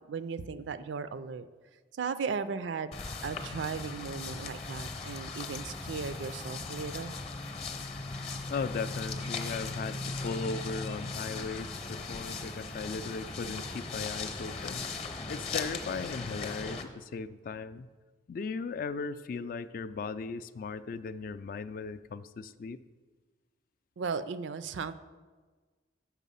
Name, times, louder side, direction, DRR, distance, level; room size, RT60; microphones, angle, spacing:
voice 1, 0.1-1.5 1.9-2.9 3.2-7.2 24.0-24.9, right 5 dB, 80° right, 13 dB, 0.4 m, -36 dB
sound 1, 2.9-16.8, left 3 dB, 35° left, 0.8 m, -38 dB
voice 2, 8.5-14.8 15.3-17.9 18.3-22.8, left 4 dB, 50° left, 13 dB, 0.3 m, -37 dB
7.3 x 5.8 x 5.5 m, 1.4 s
head